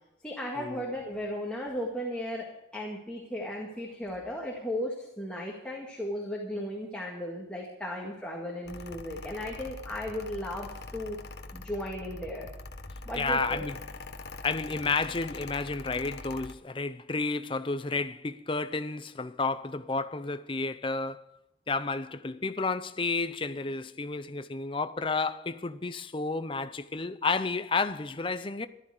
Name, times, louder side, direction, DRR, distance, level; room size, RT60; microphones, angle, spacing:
voice 1, 0.2-11.2 11.5-12.5 13.0-13.6, equal, 5° left, 2.0 m, -36 dB
Mechanical fan, 8.6-16.5, left 3 dB, 60° left, 1.0 m, -43 dB
voice 2, 13.1-13.8 14.4-21.2 21.7-28.7, left 3 dB, 25° left, 0.6 m, -31 dB
14.0 x 12.5 x 4.9 m
head